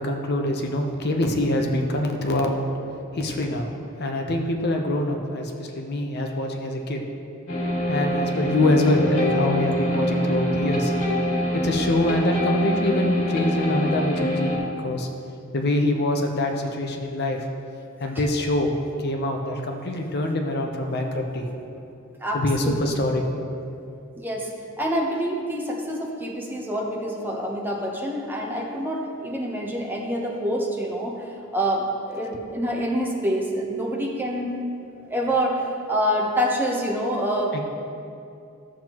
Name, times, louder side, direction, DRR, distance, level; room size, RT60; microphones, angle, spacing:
voice 1, 0.0-2.6 3.1-3.7 4.0-7.0 7.9-10.9 11.5-15.1 15.5-17.4 18.0-21.5 22.3-23.2, left 1 dB, 50° left, 2 dB, 0.8 m, -24 dB
sound 1, 7.5-14.6, left 1 dB, 85° left, 2.2 m, -24 dB
voice 2, 22.2-23.0 24.2-24.5 24.8-34.6 35.1-37.6, equal, 10° right, -1 dB, 0.9 m, -26 dB
12.5 x 7.4 x 3.0 m, 2.6 s
head